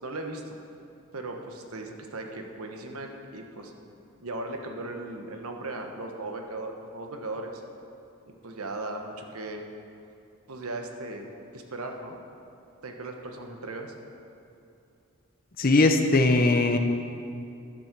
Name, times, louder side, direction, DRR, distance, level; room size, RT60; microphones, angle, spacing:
voice 1, 0.0-0.6 1.1-3.7 4.2-7.6 8.3-9.6 10.5-11.3 11.5-12.2 12.8-13.9, right 2 dB, 80° right, 3 dB, 1.1 m, -37 dB
voice 2, 15.6-16.8, left 2 dB, 40° left, 5 dB, 0.7 m, -20 dB
11.0 x 7.4 x 6.7 m, 2.6 s
head